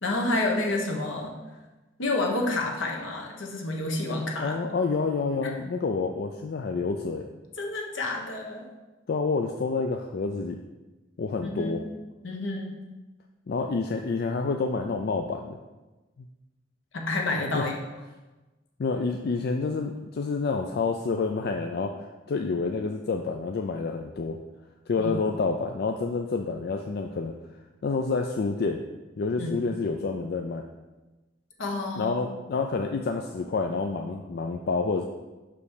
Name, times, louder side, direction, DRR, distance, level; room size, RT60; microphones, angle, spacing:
voice 1, 0.0-1.3 2.0-4.6 7.6-8.7 11.4-11.8 12.2-12.8 16.9-17.7 25.0-25.2 29.4-29.6 31.6-32.3, left 2 dB, 75° left, 1 dB, 1.2 m, -29 dB
voice 2, 4.4-7.3 9.1-10.6 11.2-11.8 13.5-15.6 16.2-16.3 17.5-17.6 18.8-21.9 22.3-24.4 24.9-27.3 27.8-28.8 29.2-30.6 32.0-35.0, left 4 dB, 55° left, 4 dB, 0.4 m, -28 dB
5.8 x 5.2 x 4.9 m, 1.1 s
head